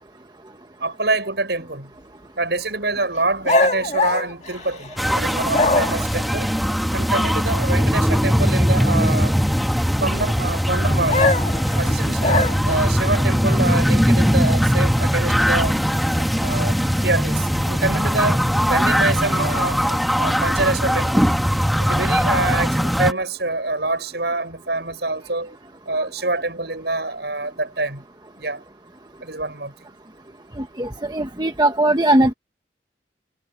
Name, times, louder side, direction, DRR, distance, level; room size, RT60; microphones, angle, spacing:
voice 1, 0.8-1.9 2.4-6.5 6.9-9.4 10.0-11.3 11.7-15.8 16.2-16.7 17.0-21.3 21.8-25.5 25.8-28.0 28.4-28.6 29.2-29.7, right 2 dB, 70° right, 6.8 m, -26 dB
sound 1, 3.4-5.1 5.5-6.2 11.1-12.9, left 2 dB, 40° left, 2.0 m, -21 dB
sound 2, 5.0-23.1, equal, ahead, 1.7 m, -20 dB
voice 2, 30.6-32.3, right 1 dB, 25° right, 1.1 m, -19 dB
head